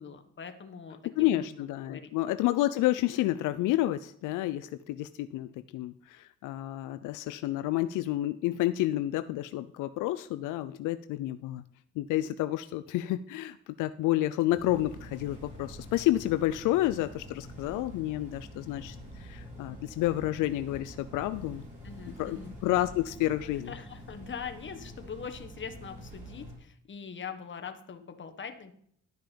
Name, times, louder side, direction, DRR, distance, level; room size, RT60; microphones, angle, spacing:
voice 1, 0.0-2.1 21.8-22.5 23.7-28.7, left 6 dB, 40° left, 7 dB, 1.3 m, -42 dB
voice 2, 1.2-11.6 12.0-21.6 22.2-23.7, left 15 dB, 90° left, 12 dB, 0.5 m, -30 dB
sound 1, 14.5-26.6, equal, 25° right, 4.6 m, -46 dB
11.5 x 5.7 x 5.1 m, 0.66 s
cardioid pair, 90°, 30 cm